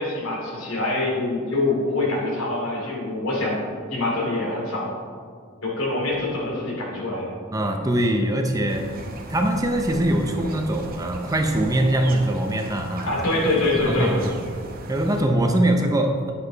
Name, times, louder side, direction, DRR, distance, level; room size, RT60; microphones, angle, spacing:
voice 1, 0.0-3.6 3.9-4.9 5.6-7.3 13.1-14.1, left 2 dB, 85° left, -2 dB, 2.8 m, -25 dB
voice 2, 7.5-8.9 9.3-13.4 13.8-14.3 14.9-16.3, right 1 dB, 15° right, 3 dB, 0.8 m, -22 dB
sound 1, 8.7-15.2, right 2 dB, 45° right, 1.0 m, -38 dB
9.8 x 8.2 x 4.1 m, 2.1 s
head